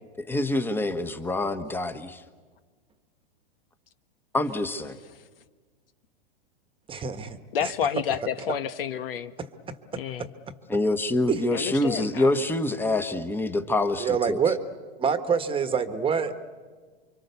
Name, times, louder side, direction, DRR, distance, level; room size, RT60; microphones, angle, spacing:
voice 1, 0.3-2.2 4.3-4.9 10.7-14.4, left 2 dB, 5° left, 10 dB, 1.3 m, -26 dB
voice 2, 6.9-7.7 9.4-9.5 9.9-10.3 11.3-11.4 14.0-14.6 15.0-16.3, right 6 dB, 20° right, 10 dB, 1.4 m, -26 dB
voice 3, 7.5-9.3 10.0-10.3 11.5-12.2, left 8 dB, 75° left, 12 dB, 1.2 m, -29 dB
29.5 x 24.5 x 7.0 m, 1.5 s
hypercardioid pair, 115°, 29 cm